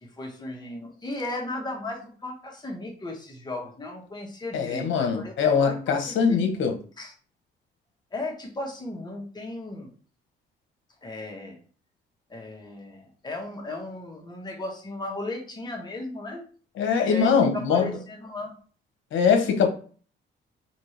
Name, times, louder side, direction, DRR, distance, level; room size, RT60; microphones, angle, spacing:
voice 1, 0.0-6.4 7.0-7.1 8.1-9.9 11.0-11.6 12.3-16.4 17.0-18.5, left 2 dB, 20° left, 1.4 m, -36 dB
voice 2, 4.5-6.7 16.8-17.9 19.1-19.7, left 6 dB, 75° left, 1.0 m, -22 dB
4.3 x 2.8 x 3.2 m
cardioid pair, 90°, 20 cm